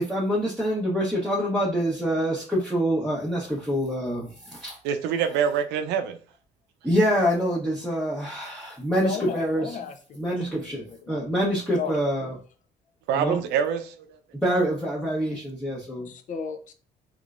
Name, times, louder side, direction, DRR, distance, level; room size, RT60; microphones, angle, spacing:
voice 1, 0.0-4.8 6.8-9.7 10.2-12.3 13.1-13.4 14.4-16.1, equal, ahead, -6 dB, 0.9 m, -26 dB
voice 2, 4.8-6.2 13.1-14.1, right 7 dB, 85° right, 8 dB, 0.6 m, -25 dB
voice 3, 9.0-11.3 11.7-12.0 16.0-16.7, left 6 dB, 50° left, 8 dB, 0.6 m, -35 dB
3.6 x 3.2 x 2.4 m, 0.39 s
cardioid pair, 110°, 17 cm